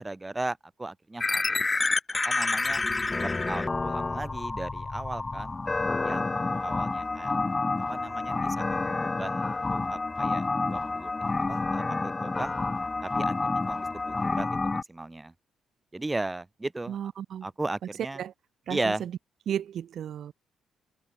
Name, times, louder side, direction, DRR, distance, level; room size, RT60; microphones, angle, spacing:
voice 1, 0.0-1.9 2.2-2.8 3.2-5.6 6.0-7.4 7.9-11.1 11.5-12.5 13.0-15.3 15.9-17.0 17.4-18.2 18.7-19.1, right 2 dB, 15° right, 6.8 m, -36 dB
sound 1, 1.2-14.8, left 3 dB, 25° left, 2.8 m, -29 dB
voice 2, 16.9-17.5 18.2-18.3 18.7-19.1 19.5-20.3, right 9 dB, 65° right, 6.0 m, -34 dB
cardioid pair, 90°, 0 cm